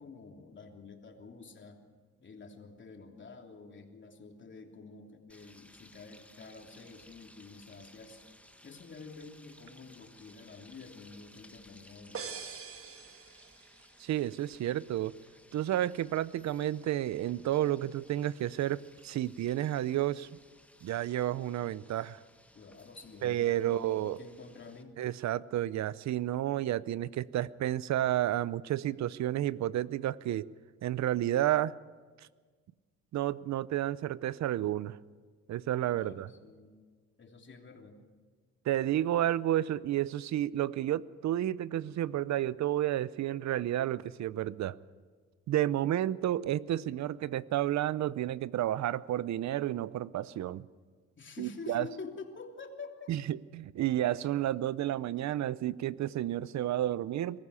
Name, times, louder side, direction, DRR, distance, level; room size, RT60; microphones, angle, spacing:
voice 1, 0.0-1.8 2.2-8.2 8.6-12.3 22.5-25.0 36.0-36.7 37.2-38.0 51.2-53.1, left 4 dB, 40° left, 2 dB, 3.1 m, -48 dB
sound 1, 5.3-24.8, left 1 dB, 5° left, 1.5 m, -59 dB
sound 2, 12.1-13.9, right 6 dB, 45° right, 1.7 m, -43 dB
voice 2, 14.0-15.1 15.5-20.3 20.8-22.2 23.2-24.2 25.0-30.5 30.8-31.7 33.1-35.0 35.5-36.3 38.6-44.8 45.5-50.7 51.4-51.9 53.1-57.4, right 13 dB, 65° right, 19 dB, 0.7 m, -31 dB
23.0 x 15.0 x 8.4 m, 1.5 s
cardioid pair, 90°, 30 cm